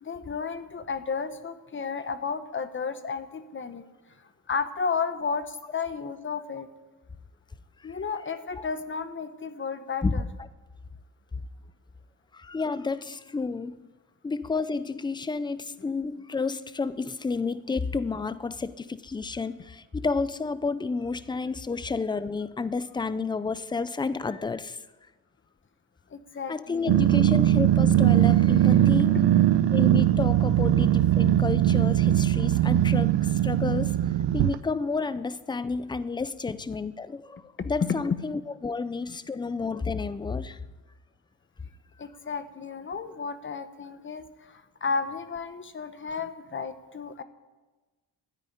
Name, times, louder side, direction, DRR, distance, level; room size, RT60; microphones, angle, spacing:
voice 1, 0.0-3.8 4.5-6.7 7.8-10.2 26.1-26.9 39.1-39.2 42.0-47.2, left 5 dB, 30° left, 11 dB, 0.9 m, -33 dB
voice 2, 12.3-13.9 14.2-24.8 26.5-29.2 29.7-34.0 34.3-40.6, left 4 dB, 10° left, 15 dB, 0.4 m, -31 dB
Growling, 26.9-34.6, right 12 dB, 80° right, 0.7 m, -21 dB
13.0 x 9.8 x 9.9 m, 1.2 s
wide cardioid pair, 165°, 41 cm